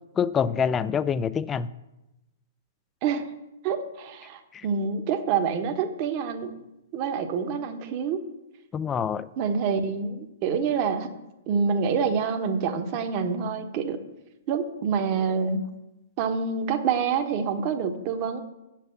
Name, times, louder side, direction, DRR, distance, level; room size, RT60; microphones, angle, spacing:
voice 1, 0.2-1.7 4.5-4.7 8.7-9.3, left 7 dB, 20° left, 16 dB, 0.4 m, -26 dB
voice 2, 3.6-6.5 6.9-8.2 9.4-11.1 11.5-14.0 14.5-15.6 16.2-18.4, right 6 dB, 40° right, 8 dB, 1.1 m, -27 dB
8.3 x 5.9 x 7.3 m, 0.95 s
figure-of-eight pair, 115°, 0 cm